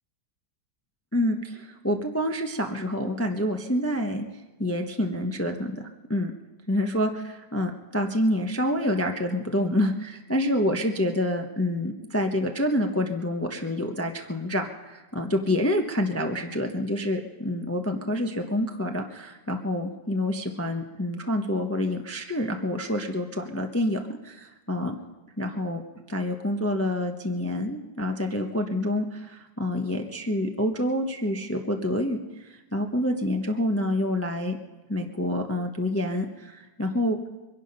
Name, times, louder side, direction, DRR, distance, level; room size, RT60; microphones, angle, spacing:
voice 1, 1.1-4.2 4.6-5.8 6.1-6.3 6.7-24.9 25.4-25.8 26.1-34.6 34.9-37.2, left 1 dB, 15° left, 4 dB, 0.6 m, -27 dB
24.0 x 11.0 x 5.4 m, 1.1 s
omnidirectional pair, 1.9 m